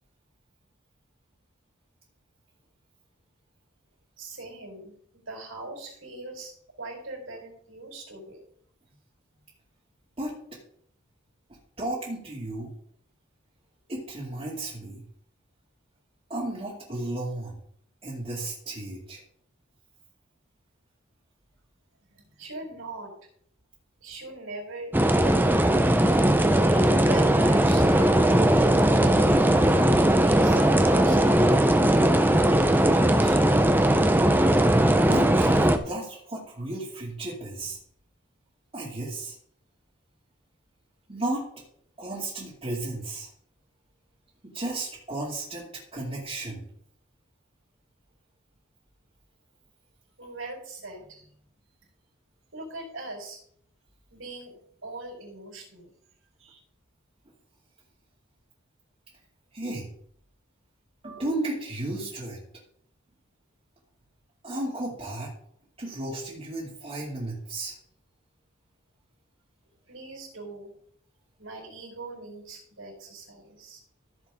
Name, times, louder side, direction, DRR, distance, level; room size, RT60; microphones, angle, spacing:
voice 1, 4.2-6.5 6.8-8.4 22.1-23.1 24.0-25.7 26.7-29.1 30.1-32.0 32.7-33.6 50.2-51.3 52.5-53.4 54.1-54.5 54.8-55.9 56.4-56.6 69.9-70.7 71.4-73.8, right 2 dB, 75° right, 1 dB, 4.5 m, -41 dB
voice 2, 11.8-12.7 13.9-15.0 16.3-17.6 18.0-19.2 34.5-34.6 35.1-37.8 38.7-39.3 41.1-41.4 42.0-43.3 44.5-46.6 59.5-59.9 61.0-62.4 64.4-65.3 65.8-67.7, right 2 dB, 30° right, -7 dB, 2.5 m, -33 dB
sound 1, 24.9-35.8, right 1 dB, 10° right, 0.7 m, -19 dB
15.0 x 7.2 x 3.7 m, 0.64 s
head